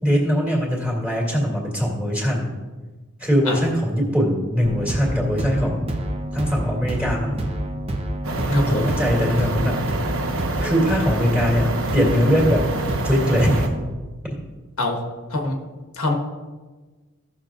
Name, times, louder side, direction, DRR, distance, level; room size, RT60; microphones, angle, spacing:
voice 1, 0.0-2.5 3.2-5.9 6.3-7.4 8.5-9.8 10.6-12.7 13.0-13.7, equal, 5° right, -2 dB, 2.4 m, -21 dB
sound 1, 4.6-13.9, right 1 dB, 25° right, 0.8 m, -28 dB
sound 2, 8.2-13.7, right 2 dB, 70° right, 0.9 m, -28 dB
voice 2, 8.5-8.9 14.8-15.0 15.3-15.6 15.9-16.1, left 2 dB, 80° left, 2 dB, 1.3 m, -24 dB
16.0 x 6.7 x 2.5 m, 1.3 s
head